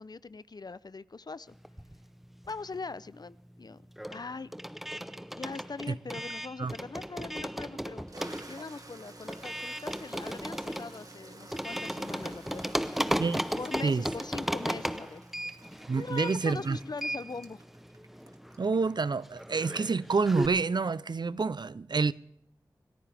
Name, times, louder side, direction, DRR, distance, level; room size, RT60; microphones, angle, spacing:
voice 1, 0.0-1.5 2.5-3.8 4.1-4.5 5.4-8.0 8.5-13.2 13.5-15.2 15.9-17.6, left 4 dB, 55° left, 0.6 m, -41 dB
sound 1, 1.6-2.9 3.2-20.5, equal, 5° right, 0.8 m, -36 dB
Toilet flush, 6.8-6.9 7.5-20.0, right 2 dB, 50° right, 2.0 m, -51 dB
voice 2, 15.9-16.8 18.6-22.1, right 4 dB, 65° right, 0.6 m, -28 dB
28.0 x 14.0 x 3.5 m
wide cardioid pair, 50°, 8 cm